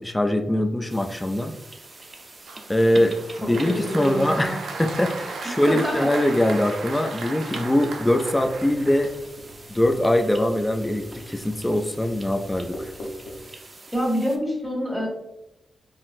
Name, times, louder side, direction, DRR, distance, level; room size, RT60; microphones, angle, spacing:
voice 1, 0.0-1.5 2.7-9.1 9.7-12.9, left 1 dB, 15° left, 5 dB, 0.3 m, -22 dB
sound 1, 0.9-14.4, right 2 dB, 40° right, 0.6 m, -43 dB
Applause, 2.5-9.6, right 3 dB, 85° right, 0.4 m, -36 dB
voice 2, 3.4-4.6 5.7-6.1 13.9-15.1, equal, 5° right, -2 dB, 1.3 m, -27 dB
Writing, 7.8-13.4, left 1 dB, 85° left, 0.6 m, -42 dB
3.9 x 2.0 x 2.5 m, 0.89 s
cardioid pair, 60°, 0 cm